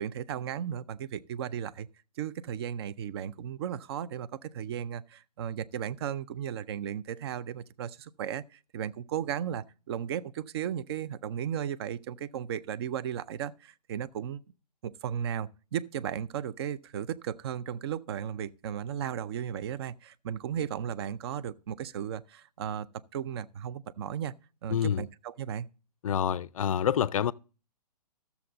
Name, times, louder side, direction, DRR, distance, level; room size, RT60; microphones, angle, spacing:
voice 1, 0.0-1.9 2.2-14.4 14.8-22.9 23.1-24.3 24.6-25.7, right 9 dB, 40° right, 0.5 m, -35 dB
voice 2, 24.7-25.0 26.0-27.3, left 9 dB, 55° left, 0.4 m, -27 dB
13.5 x 7.0 x 3.8 m
figure-of-eight pair, 125°, 21 cm